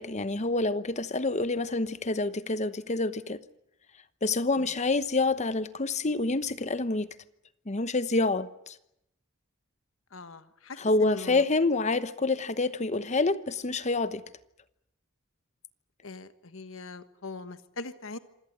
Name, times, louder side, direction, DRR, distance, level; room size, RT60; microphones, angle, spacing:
voice 1, 0.0-3.4 4.2-7.1 7.7-8.8 10.8-14.2, left 3 dB, 35° left, 1.0 m, -27 dB
voice 2, 10.1-11.4 16.0-18.2, left 3 dB, 70° left, 1.3 m, -40 dB
26.5 x 17.0 x 9.8 m
head